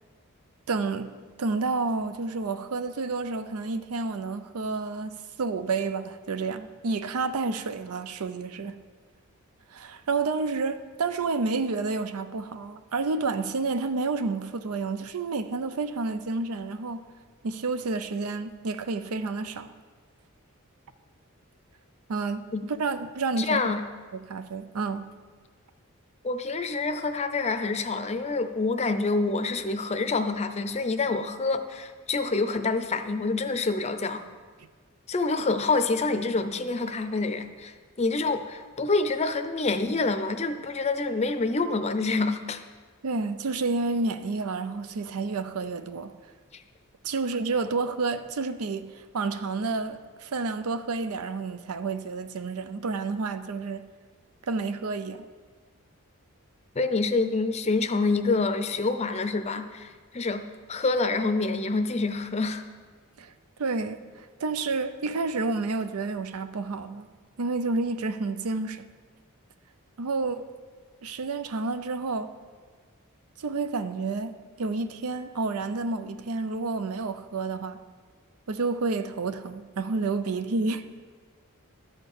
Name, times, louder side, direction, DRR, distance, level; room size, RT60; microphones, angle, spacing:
voice 1, 0.7-8.8 9.7-17.1 17.4-19.7 22.1-22.5 22.8-23.7 24.1-25.1 43.0-46.2 47.0-53.9 54.5-55.2 63.2-63.3 63.6-67.1 67.4-68.9 70.0-70.5 71.0-72.3 73.4-77.8 78.5-80.9, right 3 dB, 90° right, 0.5 m, -30 dB
voice 2, 23.4-23.8 26.2-34.2 35.1-42.6 46.5-46.6 56.8-60.4 60.7-62.6, left 3 dB, 30° left, 0.5 m, -27 dB
12.0 x 4.4 x 6.5 m
head